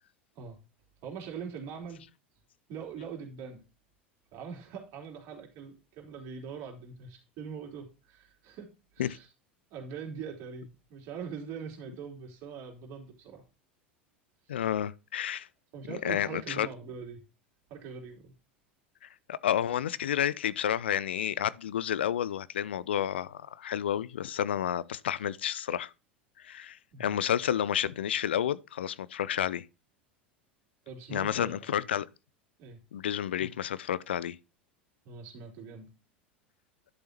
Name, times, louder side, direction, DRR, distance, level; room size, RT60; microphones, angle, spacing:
voice 1, 1.0-2.0 2.7-3.6 4.3-8.7 8.9-9.3 9.7-13.4 14.5-14.6 15.7-17.2 17.7-18.3 26.9-27.1 30.8-31.6 32.6-32.8 35.0-35.9, right 6 dB, 50° right, 3.3 m, -42 dB
voice 2, 14.5-15.5 16.0-16.7 19.0-25.9 26.4-29.7 31.1-32.1 32.9-34.4, left 10 dB, 70° left, 0.4 m, -30 dB
11.0 x 6.9 x 2.9 m
figure-of-eight pair, 80°, 6 cm